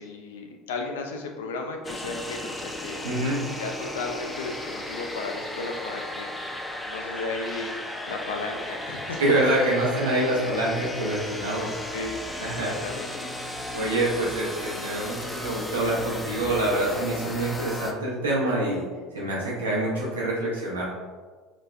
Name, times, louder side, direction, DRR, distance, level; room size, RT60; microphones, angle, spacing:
voice 1, 0.0-3.0 3.6-6.3 6.8-7.7 8.1-9.2 11.5-12.2 12.6-13.1, left 3 dB, 80° left, 3 dB, 0.4 m, -34 dB
sound 1, 1.8-17.9, left 1 dB, 15° left, 0.4 m, -35 dB
voice 2, 3.0-3.4 9.2-11.8 12.4-12.7 13.7-18.8 19.1-20.8, right 1 dB, 90° right, -4 dB, 0.7 m, -26 dB
4.0 x 2.1 x 2.3 m, 1.4 s
hypercardioid pair, 70°, 0 cm